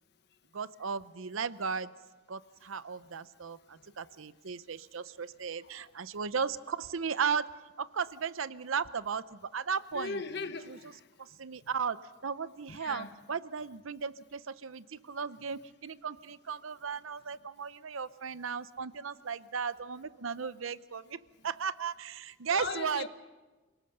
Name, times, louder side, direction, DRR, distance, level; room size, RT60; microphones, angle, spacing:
voice 1, 0.5-1.9 2.3-7.5 7.8-10.2 10.7-10.8 11.2-12.0 12.2-21.2 21.4-23.0, right 6 dB, 80° right, 0.7 m, -36 dB
voice 2, 9.9-11.1 12.7-13.1 22.5-23.1, left 4 dB, 55° left, 1.3 m, -39 dB
27.5 x 18.5 x 6.7 m
head